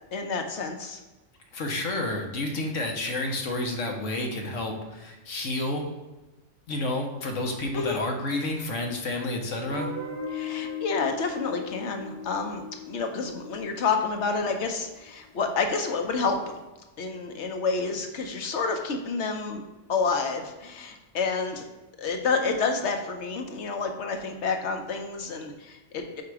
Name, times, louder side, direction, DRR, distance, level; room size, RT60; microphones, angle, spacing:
voice 1, 0.1-1.0 7.7-8.0 10.3-16.4 17.0-19.6 19.9-21.6 22.0-26.2, left 4 dB, 70° left, 4 dB, 1.0 m, -29 dB
voice 2, 1.5-5.8 6.7-9.9, left 2 dB, 85° left, 2 dB, 1.3 m, -30 dB
Guitar, 9.7-14.6, left 4 dB, 10° right, 0.8 m, -37 dB
4.8 x 4.4 x 4.8 m, 1.1 s
omnidirectional pair, 1.3 m